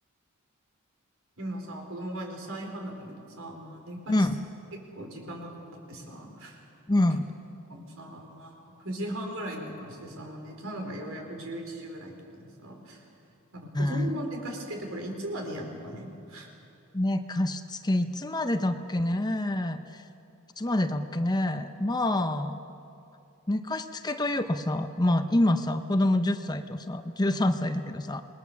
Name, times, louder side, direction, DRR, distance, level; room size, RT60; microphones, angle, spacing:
voice 1, 1.4-4.3 5.0-5.6 5.9-6.6 7.0-7.1 7.7-13.1 13.5-16.5, right 1 dB, 65° right, 2 dB, 4.5 m, -38 dB
voice 2, 6.9-7.3 13.7-14.1 16.9-20.1 20.6-22.6 23.5-28.2, left 1 dB, 20° left, 8 dB, 0.7 m, -27 dB
28.0 x 21.0 x 7.1 m, 2.6 s
head